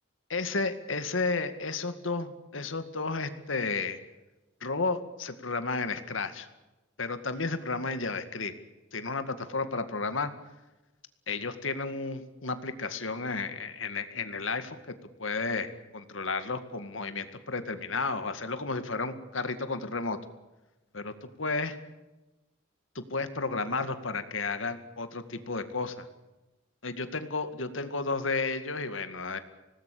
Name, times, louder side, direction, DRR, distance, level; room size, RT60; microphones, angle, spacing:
voice 1, 0.3-4.0 4.6-6.5 7.0-8.5 8.9-10.3 11.3-14.9 15.2-20.2 20.9-21.8 23.0-26.1 26.8-29.4, left 3 dB, 80° left, 9 dB, 2.1 m, -32 dB
26.0 x 19.0 x 8.6 m, 1.0 s
head